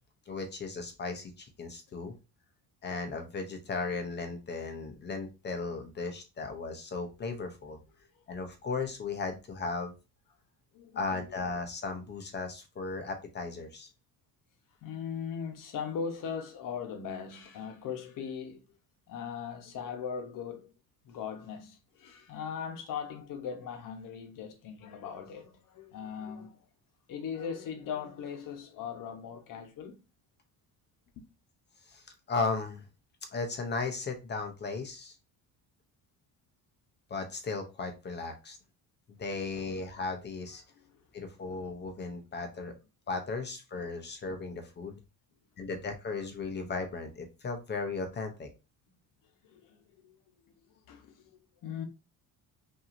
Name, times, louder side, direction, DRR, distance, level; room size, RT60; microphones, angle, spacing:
voice 1, 0.3-2.1 2.8-7.8 8.3-9.9 10.9-13.9 31.9-32.8 33.3-35.1 37.1-38.6 39.2-40.6 41.1-42.8 43.1-45.0 45.6-48.5, left 4 dB, 30° left, 0.6 m, -36 dB
voice 2, 10.7-11.3 14.8-18.6 19.1-20.7 21.0-26.6 27.1-30.0 39.5-39.6 40.7-41.0 49.4-50.1 50.4-51.8, left 7 dB, 55° left, 1.0 m, -39 dB
5.7 x 2.7 x 2.5 m
cardioid pair, 175°, 38 cm